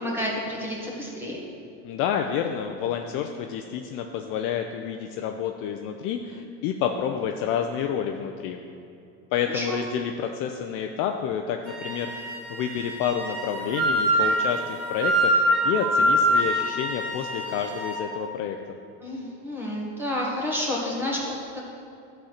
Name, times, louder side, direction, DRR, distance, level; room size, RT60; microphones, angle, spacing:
voice 1, 0.0-1.4 9.5-9.8 19.0-21.2, left 1 dB, 5° right, -4 dB, 1.6 m, -30 dB
voice 2, 1.8-8.6 9.3-18.8, left 8 dB, 40° left, 4 dB, 0.4 m, -29 dB
Wind instrument woodwind instrument, 11.7-18.0, right 1 dB, 75° right, 2.3 m, -25 dB
12.0 x 4.4 x 6.4 m, 2.7 s
cardioid pair, 165°, 31 cm